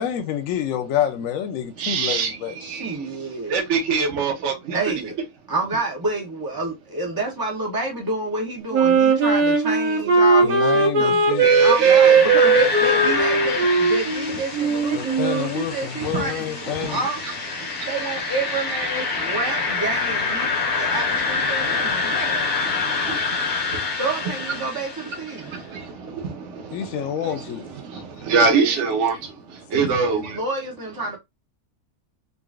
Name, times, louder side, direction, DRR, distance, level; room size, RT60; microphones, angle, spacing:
voice 1, 0.0-2.6 10.4-11.5 14.9-17.0 26.7-27.7, left 9 dB, 70° left, 0.9 m, -27 dB
voice 2, 1.8-3.0 3.5-4.8 11.4-12.1 14.9-15.0 16.0-17.0 17.2-17.3 22.4-23.5 23.7-23.8 25.4-29.2 29.7-30.4, right 5 dB, 60° right, 0.9 m, -25 dB
voice 3, 2.6-3.6 4.7-5.2 5.5-11.3 11.6-17.2 17.9-22.5 24.0-25.5 28.5-28.8 29.7-31.2, right 2 dB, 35° right, 0.3 m, -29 dB
Wind instrument woodwind instrument, 8.7-15.5, right 4 dB, 80° right, 1.3 m, -18 dB
sound 1, 11.3-25.3, left 4 dB, 90° left, 1.6 m, -26 dB
3.8 x 2.4 x 2.3 m
omnidirectional pair, 1.6 m